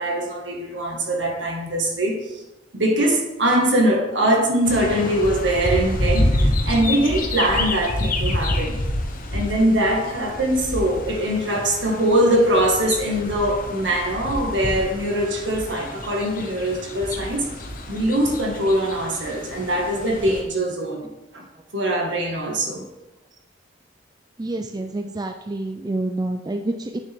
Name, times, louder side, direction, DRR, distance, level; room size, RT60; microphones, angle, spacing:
voice 1, 0.0-2.4 2.7-8.8 9.3-17.5 17.9-21.5 21.7-22.9, right 1 dB, 70° right, 1 dB, 1.8 m, -22 dB
sound 1, 4.6-20.4, left 1 dB, 50° left, 1.0 m, -28 dB
voice 2, 24.4-27.0, right 2 dB, 20° right, 5 dB, 0.4 m, -28 dB
9.1 x 6.6 x 3.6 m, 0.99 s
head